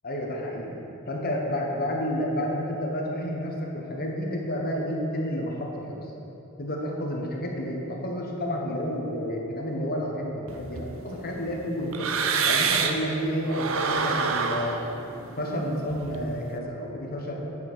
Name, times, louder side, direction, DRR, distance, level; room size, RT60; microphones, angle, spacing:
voice 1, 0.0-0.8 1.1-6.1 6.6-12.1 12.4-14.8 15.4-17.4, equal, 45° left, -1 dB, 1.3 m, -30 dB
sound 1, 10.5-13.1 13.4-16.5, right 5 dB, 70° right, 0.6 m, -28 dB
9.8 x 5.6 x 6.2 m, 3.0 s
head